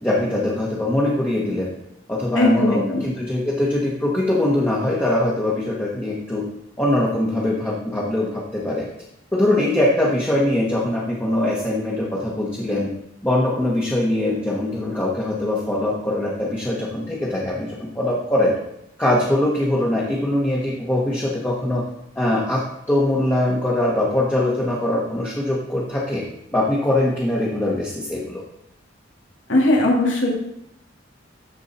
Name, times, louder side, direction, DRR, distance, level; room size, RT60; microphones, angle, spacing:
voice 1, 0.0-1.7 2.1-6.5 6.8-8.9 9.3-12.9 13.2-18.5 19.0-21.8 22.1-26.2 26.5-28.4, left 1 dB, 10° left, -5 dB, 1.5 m, -22 dB
voice 2, 2.3-3.1 29.5-30.3, left 1 dB, 80° left, -2 dB, 2.5 m, -19 dB
14.0 x 4.7 x 4.3 m, 0.79 s
head